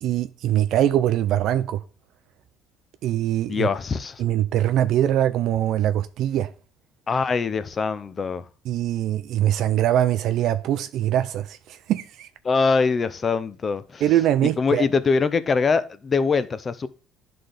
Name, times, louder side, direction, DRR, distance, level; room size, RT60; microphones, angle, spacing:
voice 1, 0.0-1.8 3.0-3.7 4.2-6.5 8.7-12.3 14.0-14.9, right 12 dB, 70° right, 0.4 m, -22 dB
voice 2, 3.5-4.2 7.1-8.5 12.4-14.0 14.6-16.9, left 4 dB, 35° left, 0.5 m, -23 dB
11.0 x 3.9 x 3.3 m
cardioid pair, 100°, 0 cm